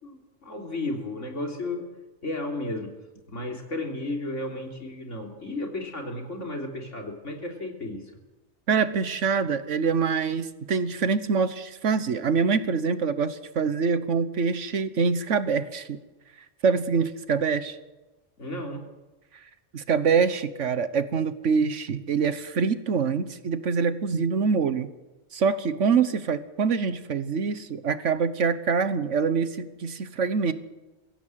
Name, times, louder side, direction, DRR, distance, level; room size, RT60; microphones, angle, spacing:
voice 1, 0.0-1.9 2.2-2.9 3.3-8.0 18.4-18.9, left 2 dB, 85° left, 2 dB, 3.7 m, -33 dB
voice 2, 8.7-16.0 16.6-17.8 19.7-24.9 25.3-30.5, right 5 dB, 85° right, 12 dB, 1.5 m, -25 dB
23.0 x 16.0 x 7.6 m, 1.1 s
omnidirectional pair, 1.2 m